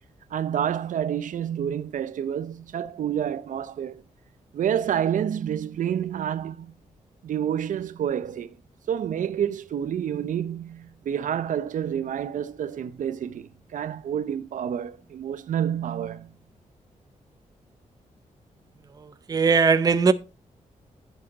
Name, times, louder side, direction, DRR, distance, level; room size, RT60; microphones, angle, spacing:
voice 1, 0.3-4.0 4.5-6.7 7.2-8.6 8.9-16.3, right 9 dB, 85° right, 0.8 m, -28 dB
voice 2, 19.0-20.1, right 5 dB, 30° right, 0.6 m, -20 dB
11.0 x 7.6 x 4.0 m
wide cardioid pair, 170°, 13 cm